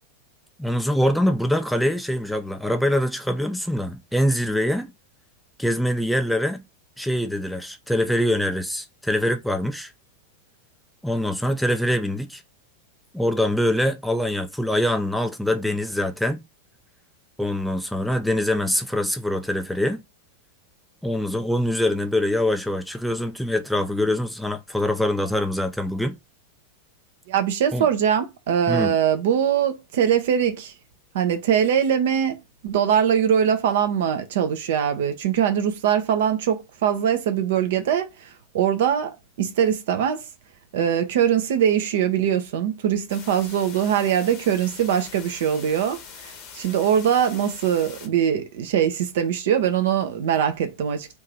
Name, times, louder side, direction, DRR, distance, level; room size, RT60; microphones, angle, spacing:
voice 1, 0.6-4.9 5.6-6.6 7.0-9.9 11.0-12.4 13.1-16.4 17.4-20.0 21.0-26.2 27.7-27.9 28.7-29.0, left 1 dB, ahead, 0.5 m, -24 dB
voice 2, 27.3-30.7 31.1-32.4 32.6-39.1 39.4-40.3 40.7-51.1, right 9 dB, 55° right, 0.8 m, -22 dB
sound 1, 43.1-48.1, left 7 dB, 40° left, 1.0 m, -43 dB
3.6 x 2.8 x 4.7 m
figure-of-eight pair, 90°, 0 cm